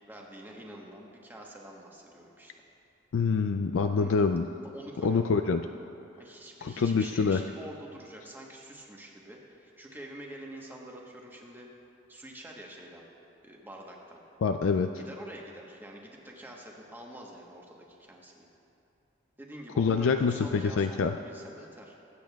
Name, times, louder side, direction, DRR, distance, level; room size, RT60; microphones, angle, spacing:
voice 1, 0.1-2.5 4.0-4.1 4.7-5.4 6.2-11.7 12.1-13.0 13.4-14.2 14.9-18.5 19.4-22.0, right 1 dB, 10° right, -1 dB, 1.1 m, -46 dB
voice 2, 3.1-4.5 5.0-5.6 6.6-7.4 14.4-14.9 19.8-21.2, left 5 dB, 90° left, 7 dB, 0.4 m, -26 dB
23.5 x 8.5 x 2.3 m, 2.8 s
head